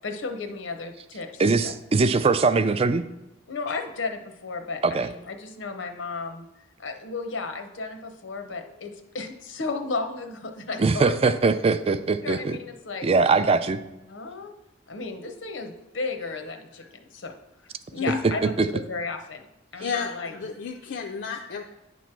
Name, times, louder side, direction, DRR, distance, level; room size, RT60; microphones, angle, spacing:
voice 1, 0.0-1.7 3.5-6.5 6.8-11.4 12.2-13.1 14.1-14.5 14.9-17.3 17.9-19.5 19.7-20.4, left 3 dB, 90° left, 5 dB, 0.8 m, -34 dB
voice 2, 1.4-3.0 4.8-5.1 10.8-12.6 13.0-13.8 18.2-18.7, right 4 dB, 30° right, 12 dB, 0.3 m, -21 dB
voice 3, 19.8-21.6, left 6 dB, 65° left, 2 dB, 0.4 m, -32 dB
9.1 x 3.1 x 5.9 m, 0.95 s
head